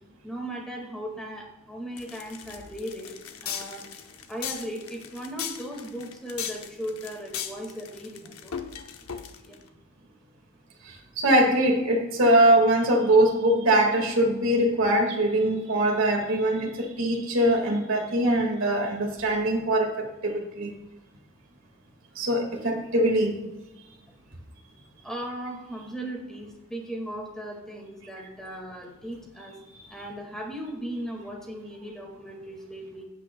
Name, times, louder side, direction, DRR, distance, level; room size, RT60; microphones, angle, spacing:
voice 1, 0.2-3.1 3.4-3.9 4.3-8.5 9.4-9.6 25.0-29.6 29.9-33.0, right 1 dB, 5° left, 0 dB, 1.8 m, -37 dB
sound 1, 2.0-9.6, left 8 dB, 70° left, 0.8 m, -38 dB
voice 2, 10.8-20.7 22.2-23.3, right 1 dB, 60° right, 1 dB, 1.8 m, -22 dB
15.5 x 8.3 x 2.2 m, 1.0 s
head